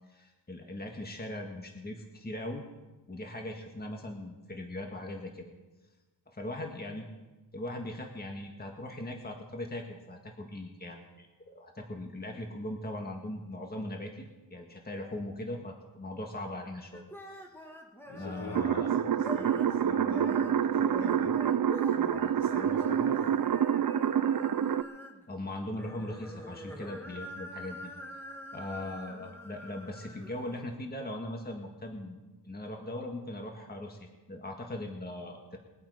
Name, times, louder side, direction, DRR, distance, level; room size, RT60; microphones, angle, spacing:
voice 1, 0.1-2.6 3.1-5.5 6.3-7.1 7.5-17.5 18.2-18.9 25.3-27.9 28.5-32.2 32.4-35.6, left 1 dB, 25° left, 2 dB, 1.8 m, -40 dB
sound 1, 16.9-18.7 19.1-19.8 20.0-25.2 25.6-30.6, left 1 dB, 5° left, 1.7 m, -46 dB
voice 2, 18.0-21.4 21.9-23.3, left 1 dB, 85° left, -3 dB, 6.2 m, -41 dB
sound 2, 18.5-24.8, right 9 dB, 55° right, 0.6 m, -27 dB
22.0 x 8.7 x 5.1 m, 1.2 s
wide cardioid pair, 85°, 41 cm